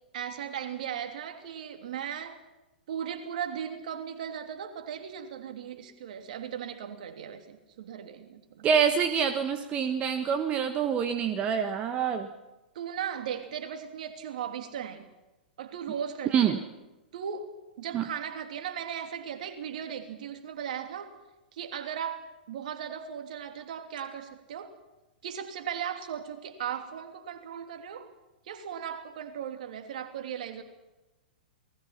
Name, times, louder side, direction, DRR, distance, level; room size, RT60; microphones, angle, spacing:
voice 1, 0.1-2.4 2.9-8.7 12.7-15.1 15.6-16.6 17.1-21.1 21.5-24.7 25.2-28.1 28.4-30.6, right 8 dB, 55° right, 6 dB, 3.0 m, -37 dB
voice 2, 8.6-12.3 16.3-16.6 17.9-18.0, right 7 dB, 25° right, 7 dB, 1.4 m, -26 dB
29.0 x 20.0 x 5.9 m, 1.0 s
figure-of-eight pair, 105°, 5 cm